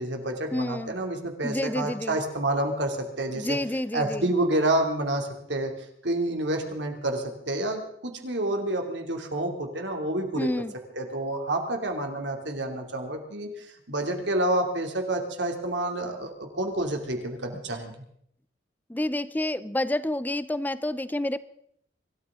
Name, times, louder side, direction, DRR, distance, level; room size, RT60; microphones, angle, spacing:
voice 1, 0.0-3.6 3.9-5.7 6.0-10.5 10.9-17.9, right 1 dB, 80° right, 4 dB, 2.7 m, -29 dB
voice 2, 0.5-0.9 1.4-2.2 3.3-4.3 10.4-10.7 18.9-21.4, left 1 dB, 10° left, 16 dB, 0.5 m, -29 dB
24.5 x 13.5 x 3.7 m, 0.71 s
head